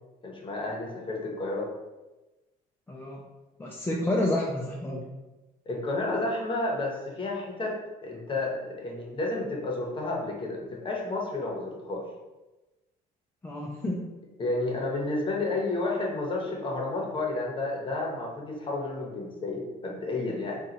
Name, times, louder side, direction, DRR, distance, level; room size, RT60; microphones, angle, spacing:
voice 1, 0.2-1.7 5.7-12.0 14.4-20.6, left 2 dB, 30° left, -2 dB, 0.9 m, -31 dB
voice 2, 2.9-3.2 3.6-5.0 13.4-14.1, left 1 dB, 10° left, -3 dB, 0.4 m, -29 dB
3.8 x 2.3 x 2.8 m, 1.1 s
cardioid pair, 110°, 17 cm